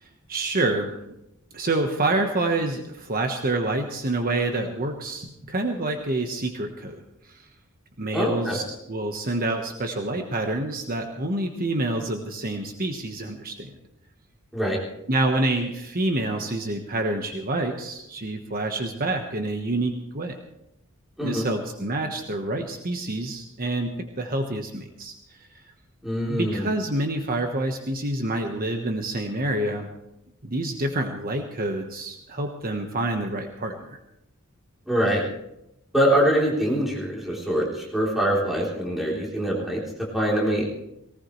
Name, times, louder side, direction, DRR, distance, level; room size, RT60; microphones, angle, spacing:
voice 1, 0.0-0.9 1.5-7.5 8.0-13.8 15.1-20.4 21.2-25.1 26.3-29.9 30.4-34.0, right 2 dB, 45° right, 4 dB, 1.3 m, -27 dB
voice 2, 8.1-8.6 14.5-14.8 21.2-21.4 26.0-26.7 34.9-35.2 35.9-39.8 40.1-40.9, equal, ahead, -4 dB, 3.5 m, -24 dB
19.0 x 18.5 x 3.2 m, 0.84 s
head